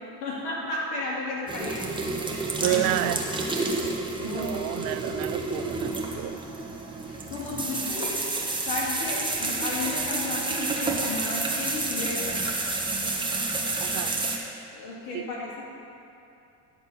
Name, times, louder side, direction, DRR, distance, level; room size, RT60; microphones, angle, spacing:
voice 1, 0.2-1.9 2.3-2.8 4.2-4.7 7.1-8.2 8.6-12.3 14.7-15.6, left 3 dB, 75° left, -5 dB, 2.5 m, -33 dB
sound 1, 1.5-14.4, right 3 dB, 10° right, 1.2 m, -30 dB
voice 2, 2.6-3.2 4.2-6.4 13.8-14.2 15.1-15.3, right 14 dB, 50° right, 12 dB, 0.5 m, -30 dB
11.0 x 4.2 x 7.0 m, 2.7 s
hypercardioid pair, 75°, 46 cm